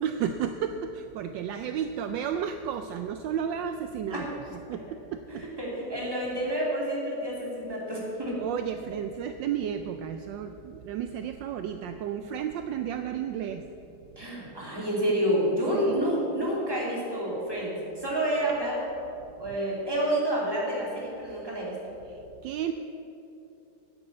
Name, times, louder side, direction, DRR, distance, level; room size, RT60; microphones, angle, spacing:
voice 1, 0.0-5.4 8.4-13.7 15.7-16.0 22.1-22.7, right 8 dB, 75° right, 8 dB, 1.2 m, -33 dB
voice 2, 5.3-8.4 14.2-18.9 19.4-21.8, equal, 10° right, -5 dB, 2.7 m, -29 dB
9.8 x 8.6 x 7.9 m, 2.8 s
omnidirectional pair, 2.1 m